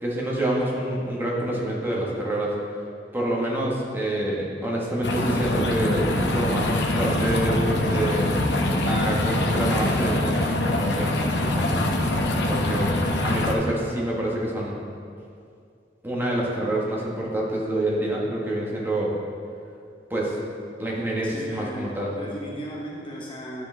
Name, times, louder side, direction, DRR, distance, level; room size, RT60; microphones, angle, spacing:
voice 1, 0.0-2.5 3.1-8.3 8.7-11.8 12.5-12.9 13.2-14.8 16.0-19.2 20.1-20.3 20.8-22.1, right 1 dB, 10° right, -4 dB, 1.3 m, -27 dB
sound 1, 5.0-13.5, left 1 dB, 70° left, 0.8 m, -24 dB
voice 2, 21.2-23.7, right 1 dB, 30° left, -3 dB, 0.9 m, -36 dB
11.5 x 6.1 x 3.3 m, 2.3 s
head